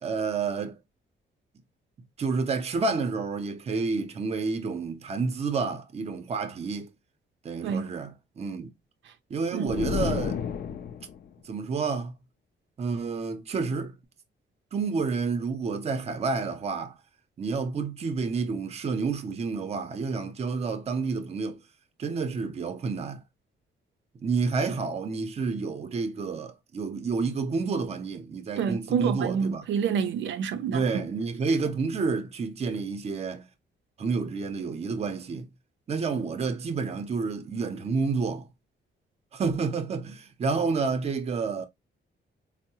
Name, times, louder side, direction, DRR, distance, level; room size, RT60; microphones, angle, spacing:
voice 1, 0.0-0.8 2.2-6.9 7.4-8.7 9.3-10.4 11.4-12.1 12.8-14.0 14.7-17.0 17.4-21.6 22.0-23.2 24.2-29.7 30.7-33.5 34.0-35.5 35.9-38.5 39.3-41.7, right 4 dB, 35° right, 0.5 m, -29 dB
sound 1, 9.7-11.2, left 7 dB, 55° left, 0.4 m, -31 dB
voice 2, 28.6-30.9, right 7 dB, 80° right, 0.5 m, -28 dB
4.4 x 2.0 x 2.7 m
wide cardioid pair, 180°, 19 cm